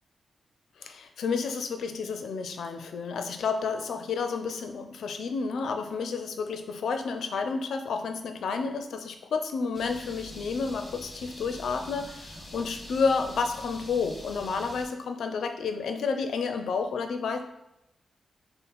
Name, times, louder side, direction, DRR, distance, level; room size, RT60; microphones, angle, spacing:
voice 1, 0.8-17.4, left 5 dB, 85° left, 6 dB, 0.4 m, -30 dB
sound 1, 9.7-14.9, left 1 dB, 15° left, 1.1 m, -44 dB
5.4 x 2.0 x 4.0 m, 0.87 s
cardioid pair, 100°, 0 cm